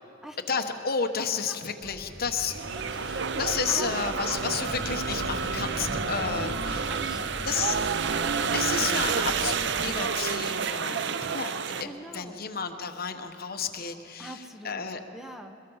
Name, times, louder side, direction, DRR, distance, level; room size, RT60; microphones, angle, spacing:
voice 1, 0.5-2.6 2.9-7.0 7.4-7.8 8.5-15.0, left 6 dB, 50° left, 7 dB, 1.1 m, -32 dB
sound 1, 1.8-10.0, equal, 35° right, 2.4 m, -41 dB
sound 2, 2.3-11.8, right 6 dB, 65° right, 0.6 m, -29 dB
voice 2, 2.7-3.4 3.8-4.4 5.6-6.3 6.9-7.6 8.0-8.4 11.8-12.4 14.2-14.9 15.1-15.6, equal, ahead, 5 dB, 0.9 m, -44 dB
23.5 x 21.0 x 5.6 m, 2.9 s
head